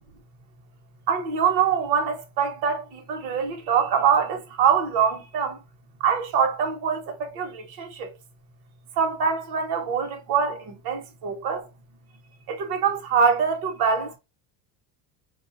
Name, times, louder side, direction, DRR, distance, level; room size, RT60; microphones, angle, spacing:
voice 1, 1.1-5.6 6.0-8.1 9.0-11.7 12.5-14.2, right 6 dB, 50° right, 1.0 m, -24 dB
4.3 x 2.4 x 2.8 m
cardioid pair, 155°, 49 cm